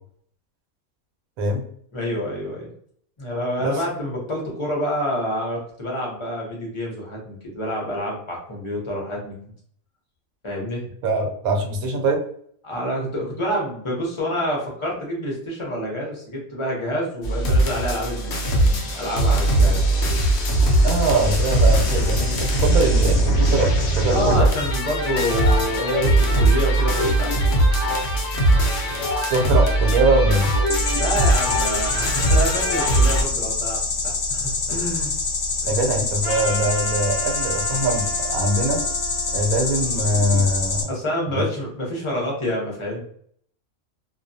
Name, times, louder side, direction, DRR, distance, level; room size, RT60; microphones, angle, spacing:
voice 1, 1.9-2.7 3.2-9.4 10.4-10.8 12.6-20.2 24.1-27.6 29.5-29.6 30.9-33.8 34.0-35.1 35.6-35.8 40.1-40.4 40.9-43.0, equal, 30° left, -3 dB, 0.6 m, -28 dB
voice 2, 11.0-12.2 20.8-24.5 29.3-30.5 35.7-38.8 39.3-40.9 41.3-41.5, right 1 dB, 85° right, 2 dB, 1.1 m, -22 dB
sound 1, 17.2-33.2, right 1 dB, 60° left, 0.8 m, -20 dB
sound 2, 30.7-40.8, left 3 dB, 80° left, 0.5 m, -26 dB
Trumpet, 36.2-40.5, equal, 40° right, 0.4 m, -34 dB
2.3 x 2.2 x 2.6 m, 0.62 s
omnidirectional pair, 1.5 m